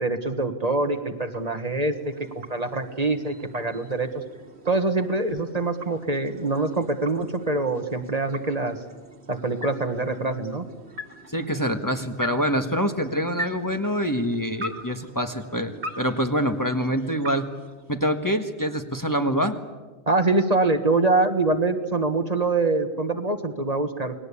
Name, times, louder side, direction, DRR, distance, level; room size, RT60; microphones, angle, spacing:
voice 1, 0.0-1.9 2.4-4.2 4.7-8.8 9.3-10.7 20.1-24.1, right 3 dB, 40° right, 7 dB, 1.7 m, -24 dB
sound 1, 0.8-18.5, equal, 85° right, 2.5 m, -42 dB
voice 2, 11.3-17.5 17.9-19.6, equal, 20° left, 5 dB, 1.5 m, -25 dB
29.0 x 20.5 x 8.5 m, 1.2 s
omnidirectional pair, 1.1 m